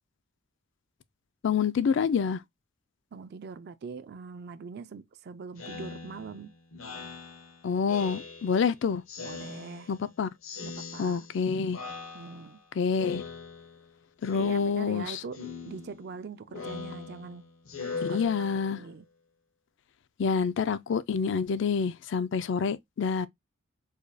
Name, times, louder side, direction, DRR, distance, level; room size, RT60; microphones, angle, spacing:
voice 1, 1.4-2.4 7.6-9.0 9.9-10.3 11.0-11.8 12.8-13.2 14.2-15.2 18.0-18.8 20.2-23.3, left 6 dB, 60° left, 0.3 m, -27 dB
voice 2, 3.1-6.6 9.2-9.9 10.6-11.3 12.1-12.6 14.3-17.5 18.1-19.1, right 5 dB, 50° right, 0.3 m, -42 dB
Speech synthesizer, 5.6-8.7 9.1-10.1 10.4-11.4 11.7-12.6 13.0-13.9 14.2-15.0 15.3-18.9, left 4 dB, 85° left, 1.0 m, -41 dB
4.8 x 2.2 x 2.6 m
head